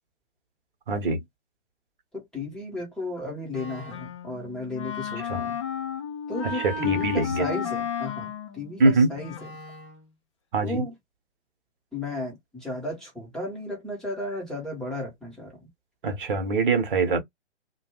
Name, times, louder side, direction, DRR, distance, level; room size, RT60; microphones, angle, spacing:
voice 1, 0.9-1.2 5.3-5.4 6.5-7.5 8.8-9.2 10.5-10.8 16.0-17.2, right 3 dB, 50° right, 1.1 m, -23 dB
voice 2, 2.1-5.6 6.3-9.3 10.6-10.9 11.9-15.7 17.1-17.2, left 2 dB, ahead, 1.0 m, -34 dB
Wind instrument woodwind instrument, 3.5-10.1, left 7 dB, 25° left, 0.5 m, -33 dB
2.6 x 2.2 x 3.1 m
figure-of-eight pair, 130°, 34 cm